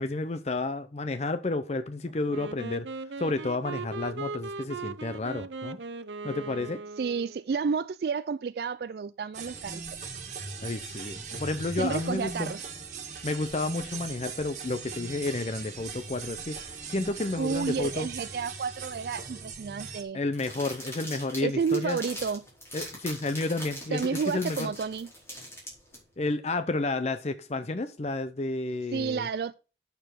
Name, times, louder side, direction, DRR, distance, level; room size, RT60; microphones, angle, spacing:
voice 1, 0.0-2.9 3.2-5.8 6.2-6.8 10.6-12.5 13.2-18.1 20.1-22.0 22.7-24.7 26.2-29.3, left 2 dB, 35° left, 0.6 m, -31 dB
Wind instrument woodwind instrument, 2.3-7.5, right 4 dB, 85° right, 0.7 m, -38 dB
voice 2, 7.0-9.8 11.8-12.6 17.4-20.2 21.4-22.4 23.9-25.1 28.9-29.5, right 5 dB, 60° right, 0.3 m, -31 dB
sound 1, 9.3-20.0, right 5 dB, 45° right, 2.2 m, -40 dB
sound 2, 20.3-26.0, equal, 15° left, 4.6 m, -41 dB
8.9 x 6.9 x 4.4 m
head